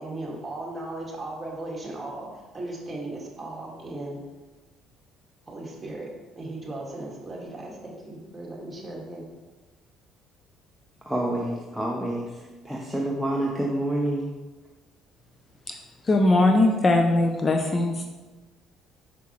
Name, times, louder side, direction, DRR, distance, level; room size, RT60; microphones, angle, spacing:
voice 1, 0.0-2.3 2.5-4.2 5.5-6.1 6.4-9.2, right 2 dB, 20° right, 2.0 m, -36 dB
voice 2, 11.1-12.3 12.6-14.3, right 1 dB, ahead, 0.8 m, -27 dB
voice 3, 16.0-18.1, left 2 dB, 30° left, 0.5 m, -20 dB
5.9 x 5.6 x 3.1 m
supercardioid pair, 80°, 0 cm